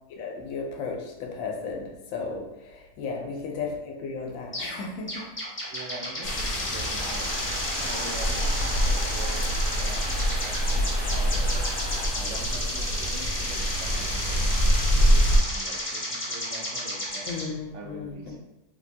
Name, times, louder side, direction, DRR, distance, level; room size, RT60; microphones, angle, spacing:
voice 1, 0.1-5.2 17.3-18.1, left 4 dB, 85° left, 1 dB, 1.0 m, -34 dB
sound 1, 4.5-4.8 5.1-17.4, left 1 dB, 15° left, 0.5 m, -33 dB
voice 2, 5.7-7.3 7.8-9.5 9.8-11.6 12.1-17.3 17.7-18.4, right 3 dB, 70° right, 0 dB, 0.8 m, -43 dB
sound 2, 6.2-15.4, equal, 60° left, 0.6 m, -25 dB
sound 3, 7.0-12.1, right 2 dB, 85° right, 1.2 m, -37 dB
3.2 x 2.1 x 2.6 m, 0.95 s
omnidirectional pair, 1.4 m